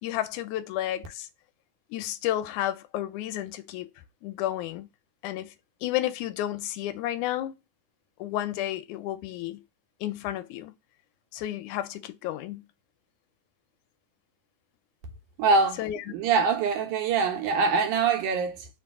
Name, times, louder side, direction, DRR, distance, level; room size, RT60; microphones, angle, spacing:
voice 1, 0.0-1.3 1.9-3.9 4.2-4.9 5.2-5.5 5.8-7.5 8.2-9.6 10.0-10.7 11.3-12.7 15.8-16.0, left 13 dB, 80° left, 1.9 m, -31 dB
voice 2, 15.4-15.8 16.1-18.7, right 4 dB, 90° right, 2.5 m, -24 dB
5.3 x 2.3 x 3.5 m
omnidirectional pair, 3.5 m